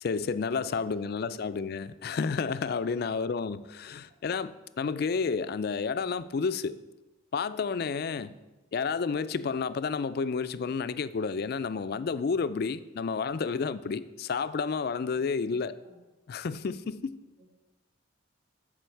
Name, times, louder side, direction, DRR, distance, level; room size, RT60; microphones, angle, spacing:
voice 1, 0.0-6.8 7.3-8.3 8.7-15.7 16.3-17.2, left 5 dB, 50° left, 14 dB, 0.3 m, -31 dB
voice 2, 0.7-1.6 3.0-3.4 8.1-8.4 15.4-16.0 17.4-17.5, right 2 dB, 65° right, -9 dB, 2.6 m, -59 dB
13.5 x 5.0 x 4.5 m, 1.1 s
head